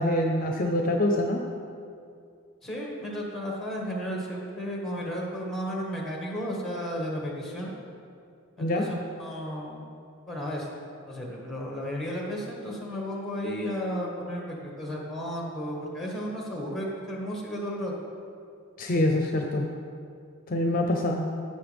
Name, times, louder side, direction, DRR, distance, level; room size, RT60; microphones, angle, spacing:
voice 1, 0.0-1.4 8.6-8.9 18.8-19.7 20.5-21.3, left 1 dB, 45° left, 3 dB, 0.6 m, -25 dB
voice 2, 2.6-7.7 8.6-9.9 10.3-10.7 11.1-17.9, equal, ahead, -2 dB, 1.8 m, -33 dB
16.0 x 6.5 x 3.5 m, 2.4 s
head